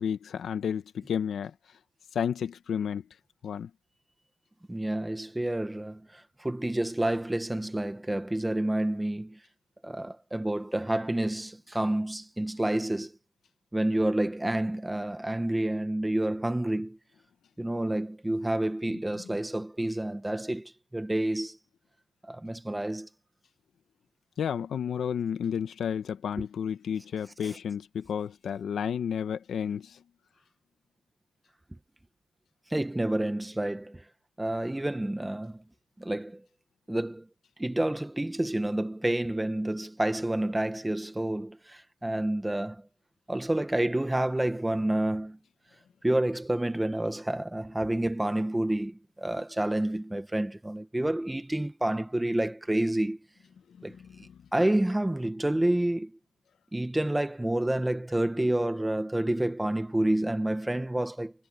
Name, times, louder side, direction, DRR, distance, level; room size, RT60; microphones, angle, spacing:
voice 1, 0.0-1.5 2.1-3.1 3.4-3.7 24.4-30.0 53.8-54.4, left 8 dB, 30° left, 1.2 m, -32 dB
voice 2, 4.7-9.4 9.8-13.1 13.7-17.0 17.6-21.6 22.2-23.1 32.7-34.0 34.4-35.6 36.0-36.4 36.9-37.2 37.6-42.8 43.3-45.4 46.0-53.2 53.8-53.9 54.5-56.1 56.7-61.3, right 1 dB, 5° right, 1.0 m, -29 dB
cardioid pair, 170°, 0 cm